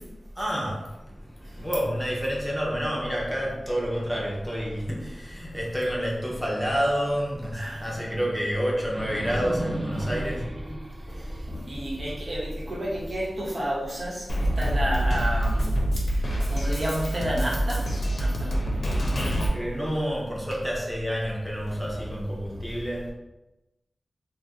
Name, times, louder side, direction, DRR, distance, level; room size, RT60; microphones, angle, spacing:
voice 1, 0.4-10.8 11.1-11.2 19.5-23.1, equal, 5° left, -4 dB, 0.8 m, -29 dB
sound 1, 4.0-6.9 7.3-7.4 8.8-13.9, right 1 dB, 40° right, 0.4 m, -37 dB
voice 2, 7.5-8.2 10.0-10.1 11.1-15.7 16.1-17.9 18.2-18.6 21.7-22.1 22.5-22.6, equal, 60° right, -6 dB, 0.9 m, -31 dB
Drum kit, 14.3-19.5, right 1 dB, 65° left, 0.5 m, -26 dB
2.6 x 2.1 x 3.4 m, 1.0 s
cardioid pair, 50°, 0 cm